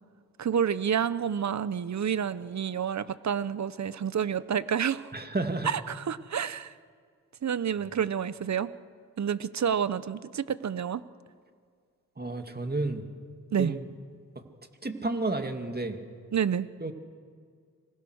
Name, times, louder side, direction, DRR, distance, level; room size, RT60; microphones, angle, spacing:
voice 1, 0.4-5.1 5.6-6.7 7.4-8.7 9.2-11.0 13.5-13.8 16.3-16.7, right 8 dB, 55° right, 16 dB, 0.9 m, -29 dB
voice 2, 5.1-5.7 12.2-13.0 13.6-13.8 14.8-16.0 16.8-16.9, right 2 dB, 30° right, 6 dB, 2.4 m, -31 dB
26.5 x 21.5 x 6.5 m, 2.1 s
cardioid pair, 50°, 33 cm